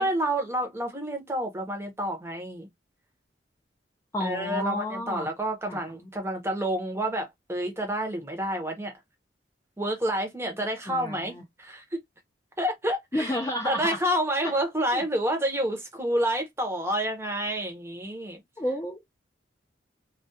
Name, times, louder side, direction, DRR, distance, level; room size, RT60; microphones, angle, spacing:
voice 1, 0.0-2.7 4.2-8.9 9.8-11.3 11.6-12.0 12.6-13.4 13.6-18.4, right 1 dB, 15° right, 0.7 m, -29 dB
voice 2, 4.1-5.3 5.7-5.8 10.9-11.4 13.1-14.0 14.4-14.5 14.9-15.0 18.6-19.2, left 1 dB, 15° left, 0.3 m, -31 dB
2.2 x 2.2 x 2.6 m
head